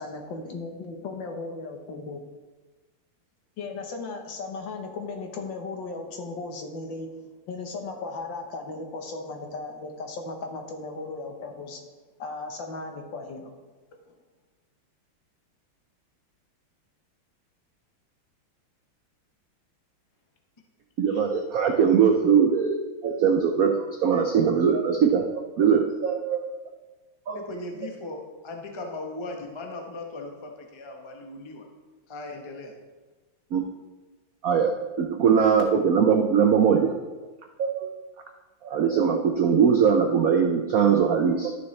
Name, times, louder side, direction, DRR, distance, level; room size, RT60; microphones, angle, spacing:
voice 1, 0.0-2.2 3.6-7.2 7.5-11.8 12.2-13.5, left 3 dB, 65° left, 3 dB, 1.7 m, -36 dB
voice 2, 21.0-22.8 23.0-26.4 27.3-27.5 33.5-33.6 34.4-37.0 37.6-37.9 38.6-41.5, right 7 dB, 85° right, 3 dB, 0.7 m, -21 dB
voice 3, 27.3-31.7 32.1-32.8, left 2 dB, 30° left, 2 dB, 0.5 m, -38 dB
12.5 x 6.9 x 3.2 m, 1.2 s
omnidirectional pair, 2.3 m